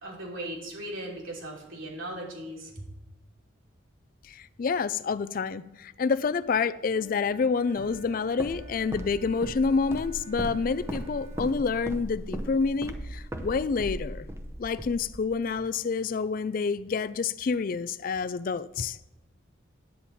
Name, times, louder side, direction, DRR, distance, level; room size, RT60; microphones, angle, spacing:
voice 1, 0.0-2.8, right 1 dB, 90° right, 3.1 m, -38 dB
voice 2, 4.2-14.3 14.6-19.0, left 5 dB, 45° left, 0.3 m, -28 dB
Wind instrument woodwind instrument, 6.9-11.5, equal, 75° right, 3.8 m, -49 dB
Walk footsteps, 7.8-15.7, equal, 15° right, 0.6 m, -38 dB
10.0 x 8.8 x 4.2 m
head